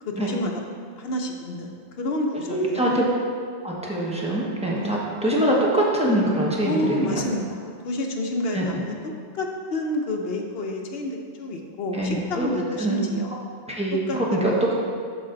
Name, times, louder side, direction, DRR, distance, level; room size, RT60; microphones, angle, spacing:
voice 1, 0.0-0.6 1.0-2.9 4.7-5.0 5.4-5.5 6.6-9.0 9.3-13.4 14.1-14.7, left 1 dB, 60° left, 2 dB, 1.0 m, -29 dB
voice 2, 2.5-3.0 3.6-7.2 8.5-8.6 11.9-12.5 12.8-13.0 13.7-14.5, right 1 dB, 5° right, -4 dB, 1.2 m, -24 dB
11.5 x 4.3 x 3.9 m, 2.2 s
omnidirectional pair, 1.2 m